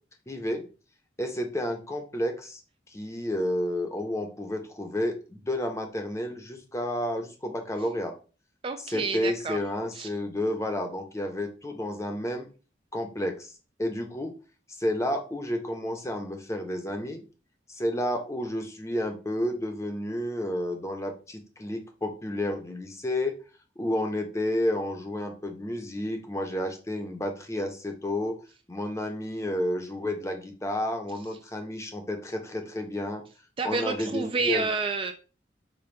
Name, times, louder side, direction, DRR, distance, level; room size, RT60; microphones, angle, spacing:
voice 1, 0.3-0.7 1.2-2.6 2.9-8.1 8.8-12.5 12.9-13.5 13.8-14.3 14.7-17.2 17.7-23.4 23.8-28.3 28.7-33.2 33.6-34.7, left 1 dB, 15° left, 4 dB, 0.7 m, -31 dB
voice 2, 8.6-9.6 9.9-10.1 33.6-35.1, right 4 dB, 30° right, 6 dB, 0.3 m, -29 dB
5.1 x 2.3 x 4.3 m, 0.35 s
head